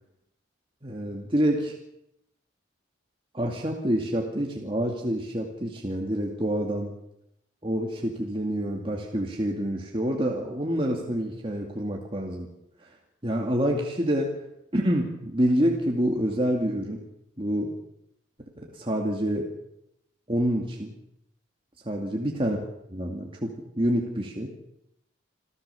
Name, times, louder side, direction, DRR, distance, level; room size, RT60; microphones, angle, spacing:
voice 1, 0.8-1.8 3.3-6.9 7.6-12.5 12.8-13.0 13.2-14.3 14.7-17.0 17.4-17.8 18.6-19.5 20.3-20.9 21.8-22.6 22.9-24.5, equal, 25° right, 0 dB, 2.4 m, -27 dB
28.0 x 14.5 x 7.1 m, 0.83 s
head